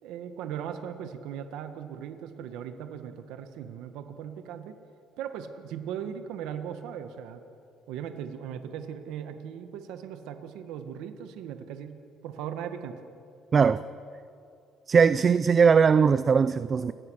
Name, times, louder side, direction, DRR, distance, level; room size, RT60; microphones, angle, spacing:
voice 1, 0.0-4.8 5.2-7.4 7.9-13.0, right 8 dB, 85° right, 7 dB, 1.6 m, -38 dB
voice 2, 14.9-16.9, right 6 dB, 35° right, 14 dB, 0.5 m, -20 dB
29.5 x 19.0 x 6.5 m, 2.5 s
cardioid pair, 130°, 0 cm